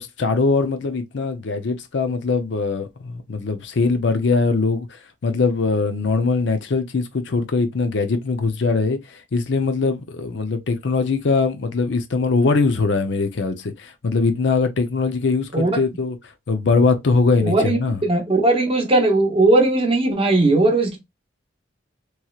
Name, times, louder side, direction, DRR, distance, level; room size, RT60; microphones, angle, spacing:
voice 1, 0.0-16.2 16.5-18.0, left 4 dB, 65° left, 0.5 m, -21 dB
voice 2, 17.4-21.0, right 2 dB, 30° right, 0.8 m, -18 dB
3.1 x 2.8 x 2.3 m
head